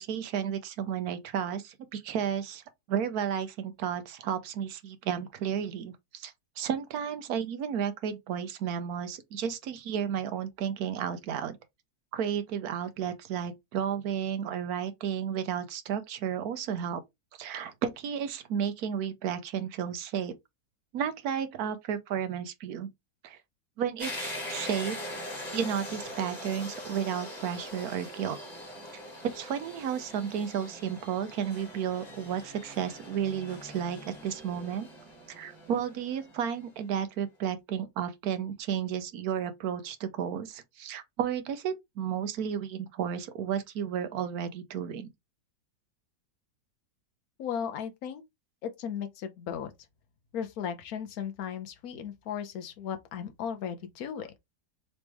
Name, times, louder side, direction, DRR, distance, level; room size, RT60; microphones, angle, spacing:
voice 1, 0.0-2.6 2.9-11.6 12.1-17.0 17.4-20.3 20.9-22.9 23.2-23.4 23.8-25.0 25.5-28.4 29.3-34.9 35.3-45.1, right 8 dB, 65° right, 1.1 m, -32 dB
sound 1, 24.0-36.7, left 1 dB, 25° left, 1.9 m, -42 dB
voice 2, 47.4-48.2 48.6-49.7 50.3-54.3, left 8 dB, 60° left, 1.2 m, -36 dB
4.1 x 3.1 x 3.3 m
omnidirectional pair, 1.9 m